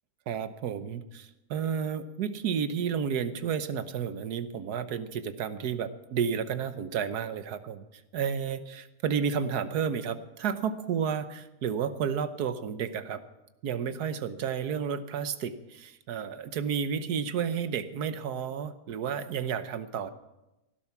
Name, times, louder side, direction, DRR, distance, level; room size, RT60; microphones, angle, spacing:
voice 1, 0.3-7.9 8.1-13.2 13.6-20.1, right 7 dB, 75° right, 11 dB, 1.4 m, -31 dB
17.5 x 12.0 x 6.0 m, 0.98 s
omnidirectional pair, 1.7 m